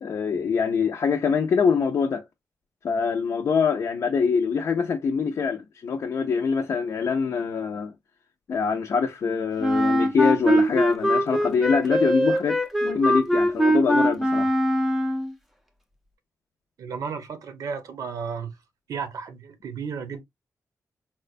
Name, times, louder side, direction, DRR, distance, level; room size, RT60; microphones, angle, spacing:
voice 1, 0.0-2.2 2.8-7.9 8.5-14.6, left 5 dB, 55° left, 0.5 m, -24 dB
Wind instrument woodwind instrument, 9.6-15.3, equal, 5° right, 0.5 m, -22 dB
voice 2, 16.8-18.5 18.9-20.2, right 6 dB, 80° right, 0.7 m, -33 dB
4.2 x 2.2 x 2.4 m
wide cardioid pair, 170°, 6 cm